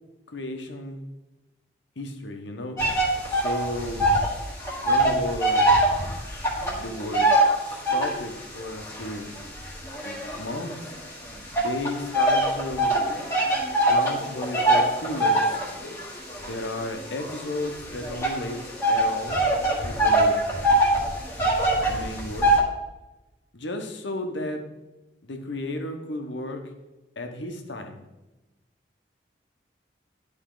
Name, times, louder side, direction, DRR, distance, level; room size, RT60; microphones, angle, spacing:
voice 1, 0.3-1.0 2.0-2.8 3.3-4.1 4.8-5.7 6.8-7.3 7.7-9.3 10.0-10.8 11.6-13.1 13.9-15.6 16.4-18.6 18.9-19.4 19.8-20.4 21.8-22.5 23.5-24.6 25.2-26.6 27.2-28.0, left 1 dB, 85° left, 4 dB, 1.1 m, -33 dB
sound 1, 2.8-4.3 4.6-8.3 8.9-10.9 11.5-22.6, right 1 dB, 15° left, 1.6 m, -23 dB
11.5 x 3.9 x 3.8 m, 1.0 s
head